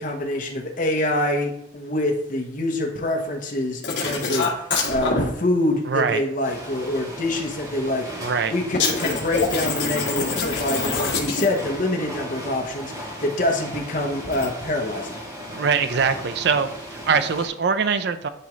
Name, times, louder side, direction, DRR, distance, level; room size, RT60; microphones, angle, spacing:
voice 1, 0.0-15.2, left 1 dB, 45° left, 1 dB, 1.1 m, -26 dB
sound 1, 3.8-5.2 8.7-11.7 14.2-14.5, left 4 dB, 65° left, 1.8 m, -25 dB
voice 2, 5.8-6.2 8.2-8.5 15.5-18.3, right 5 dB, 60° right, 10 dB, 0.5 m, -22 dB
sound 2, 6.4-17.5, equal, 20° right, 1.5 m, -36 dB
11.0 x 3.7 x 3.1 m, 0.76 s
head